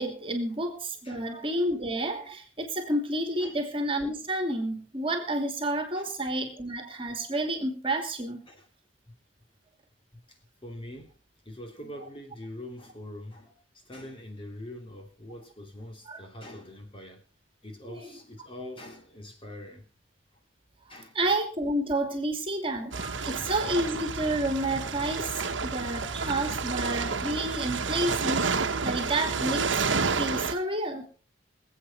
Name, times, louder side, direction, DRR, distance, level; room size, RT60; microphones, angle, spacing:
voice 1, 0.0-8.5 16.1-16.2 21.1-31.1, right 1 dB, 30° right, 2.7 m, -30 dB
voice 2, 10.1-11.1 11.4-17.2 17.6-19.9 20.9-21.2 23.2-23.5 25.4-25.6 27.6-27.7 28.8-28.9, left 1 dB, 30° left, 3.0 m, -44 dB
sound 1, 22.9-30.5, right 4 dB, 75° right, 1.2 m, -30 dB
25.0 x 8.5 x 4.2 m
head